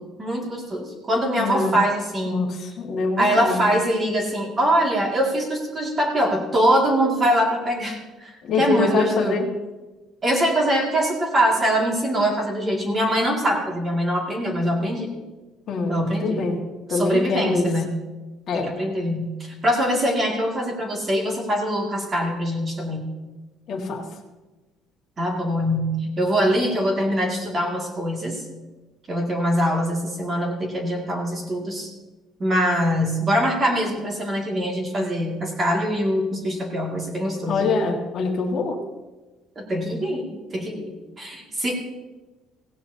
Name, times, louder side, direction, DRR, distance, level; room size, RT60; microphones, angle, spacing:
voice 1, 0.0-2.4 3.2-9.4 10.2-15.1 15.9-16.5 16.9-17.9 18.5-23.1 25.2-28.4 29.1-31.9 32.4-37.7 39.6-41.7, equal, 20° right, 0 dB, 2.1 m, -23 dB
voice 2, 1.4-1.8 2.3-3.7 8.4-9.5 15.7-16.6 16.9-17.7 18.5-18.8 23.7-24.0 37.5-38.8, left 3 dB, 35° left, -3 dB, 1.7 m, -24 dB
16.5 x 16.5 x 2.8 m, 1.2 s
cardioid pair, 170°, 0 cm